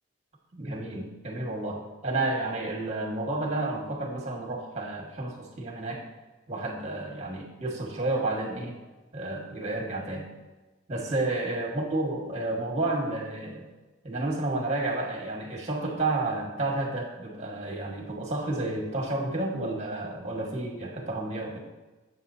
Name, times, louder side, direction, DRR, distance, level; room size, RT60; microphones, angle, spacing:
voice 1, 0.5-6.0 6.5-8.8 9.1-10.3 10.9-13.7 14.0-21.6, right 2 dB, 35° right, -1 dB, 1.6 m, -31 dB
7.9 x 7.6 x 2.7 m, 1.2 s
head